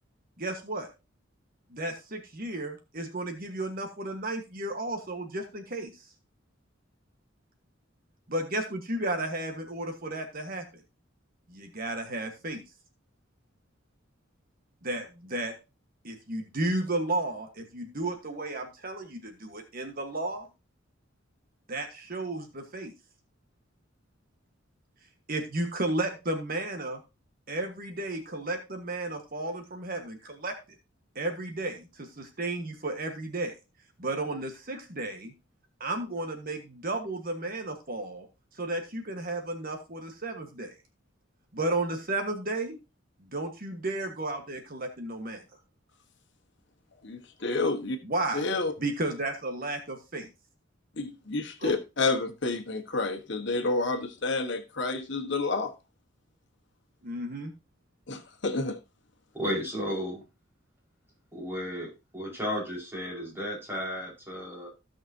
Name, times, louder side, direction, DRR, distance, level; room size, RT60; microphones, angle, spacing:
voice 1, 0.4-0.9 1.7-6.1 8.3-10.6 11.5-12.6 14.8-15.5 16.0-20.5 21.7-22.9 25.3-27.0 27.5-30.5 31.1-33.5 34.0-35.3 35.8-38.3 38.5-40.8 41.5-42.8 43.2-45.4 48.0-48.5 48.8-50.3 51.6-51.8 57.0-57.5, right 2 dB, 50° right, 1.5 m, -33 dB
voice 2, 47.0-48.0 48.3-48.7 51.0-55.7 58.1-58.8, left 3 dB, 65° left, 1.4 m, -29 dB
voice 3, 59.3-60.2 61.3-64.7, equal, 10° right, 5.0 m, -33 dB
16.0 x 5.9 x 2.8 m
head